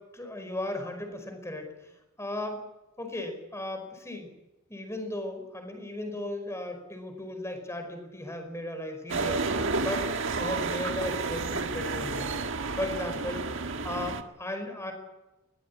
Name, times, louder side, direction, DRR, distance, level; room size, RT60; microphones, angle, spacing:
voice 1, 0.1-1.9 2.2-2.6 3.0-4.3 4.7-9.5 9.8-12.3 12.8-13.4 13.8-14.9, left 1 dB, 15° left, 5 dB, 5.2 m, -36 dB
sound 1, 9.1-14.2, right 3 dB, 60° right, 1.7 m, -31 dB
22.5 x 18.0 x 8.6 m, 1.0 s
head